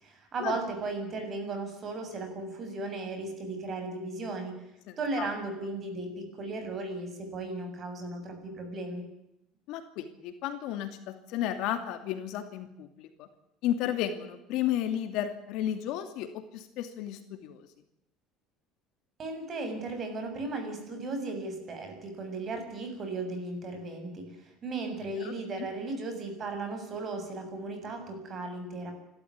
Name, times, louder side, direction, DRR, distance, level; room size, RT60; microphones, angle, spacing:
voice 1, 0.0-4.5 5.0-9.1 19.2-28.9, right 3 dB, 30° right, 6 dB, 7.1 m, -36 dB
voice 2, 4.9-5.3 9.7-13.1 13.6-16.3 16.5-17.6 25.2-25.3, left 11 dB, 65° left, 7 dB, 2.7 m, -33 dB
29.0 x 13.5 x 9.7 m, 0.84 s
cardioid pair, 150°, 0 cm